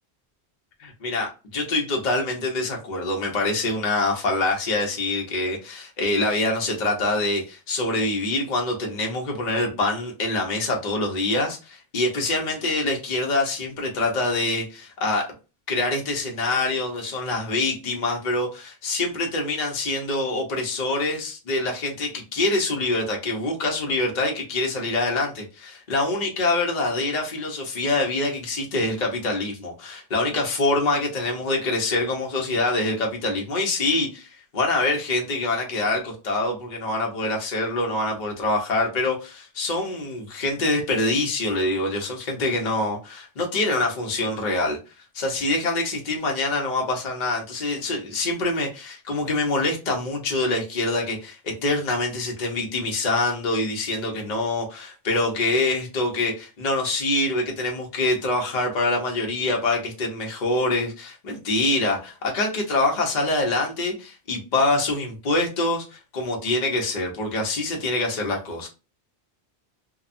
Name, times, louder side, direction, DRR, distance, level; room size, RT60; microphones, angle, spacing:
voice 1, 0.8-15.3 15.7-34.3 34.5-44.8 45.1-68.7, left 2 dB, 45° left, 0.8 m, -25 dB
2.8 x 2.2 x 2.5 m
omnidirectional pair, 1.1 m